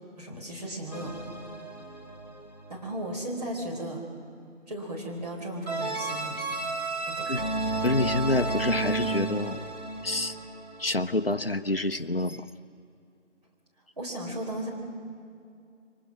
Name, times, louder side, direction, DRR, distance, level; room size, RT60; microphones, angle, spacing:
voice 1, 0.2-1.1 2.7-4.0 4.7-6.4 7.1-7.3 14.0-14.7, right 1 dB, 30° right, -2 dB, 4.4 m, -35 dB
sound 1, 0.9-3.0 5.7-11.1, right 2 dB, 30° left, 1.6 m, -33 dB
voice 2, 7.8-9.7 10.0-10.4 10.8-12.5, left 2 dB, 50° left, 10 dB, 0.8 m, -27 dB
28.5 x 24.0 x 6.2 m, 2.4 s
figure-of-eight pair, 175°, 37 cm